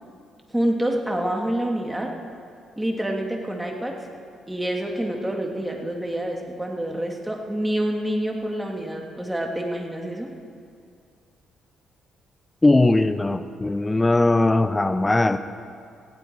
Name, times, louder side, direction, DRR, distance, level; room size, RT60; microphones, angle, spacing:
voice 1, 0.5-2.1 2.8-4.0 4.5-10.3, right 1 dB, 5° right, 1 dB, 2.3 m, -27 dB
voice 2, 12.6-15.4, left 2 dB, 15° left, 10 dB, 0.6 m, -19 dB
18.5 x 15.5 x 4.7 m, 2.3 s
cardioid pair, 90°, 0 cm